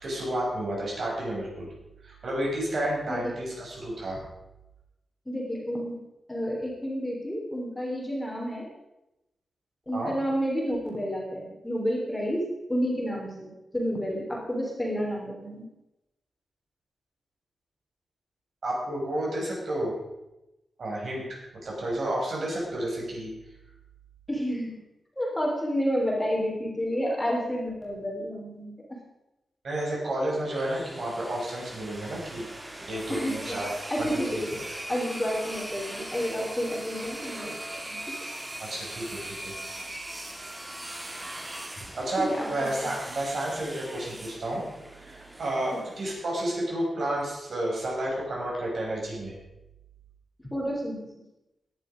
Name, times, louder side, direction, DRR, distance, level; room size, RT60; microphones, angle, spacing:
voice 1, 0.0-1.7 2.0-4.2 9.9-10.1 18.6-19.9 20.8-23.3 29.6-32.5 32.9-33.7 34.0-34.2 38.6-39.5 41.9-44.6 45.0-49.3, right 1 dB, 55° right, -3 dB, 6.5 m, -31 dB
voice 2, 5.2-6.0 6.3-8.7 9.9-15.7 24.3-24.8 25.2-29.0 33.1-33.6 33.9-37.6 37.8-38.0 42.2-42.5 45.7-45.9 50.5-51.1, equal, 10° left, -2 dB, 3.3 m, -30 dB
sound 1, 30.3-46.2, right 1 dB, 15° right, 1.8 m, -40 dB
17.0 x 11.0 x 5.1 m, 0.94 s
wide cardioid pair, 135°, 0 cm